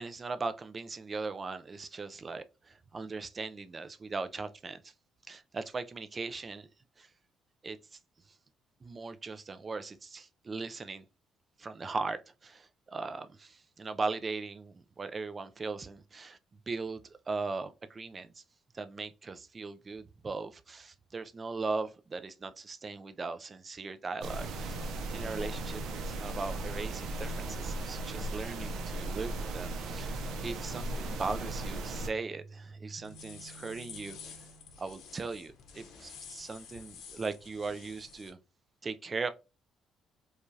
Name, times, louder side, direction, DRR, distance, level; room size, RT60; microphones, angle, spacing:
voice 1, 0.0-4.9 5.3-6.7 7.0-7.1 7.6-7.8 8.8-11.1 11.6-16.4 16.7-18.4 18.7-34.4 34.8-38.4 38.8-39.3, right 4 dB, 25° right, 0.3 m, -39 dB
sound 1, 24.2-32.1, right 2 dB, 70° right, 0.6 m, -37 dB
sound 2, 29.0-34.9, right 2 dB, 5° left, 0.9 m, -53 dB
sound 3, 33.0-38.3, left 7 dB, 70° left, 0.8 m, -50 dB
4.7 x 2.3 x 2.7 m
cardioid pair, 160°, 0 cm